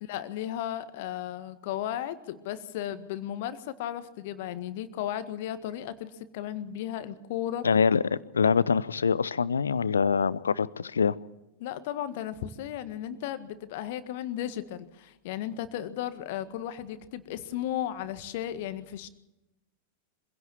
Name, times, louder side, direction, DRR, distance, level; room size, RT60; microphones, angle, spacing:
voice 1, 0.0-7.6 11.6-19.1, left 11 dB, 50° left, 1.7 m, -35 dB
voice 2, 7.6-11.1, left 6 dB, 70° left, 0.7 m, -24 dB
25.0 x 16.5 x 7.1 m
figure-of-eight pair, 90°, 0 cm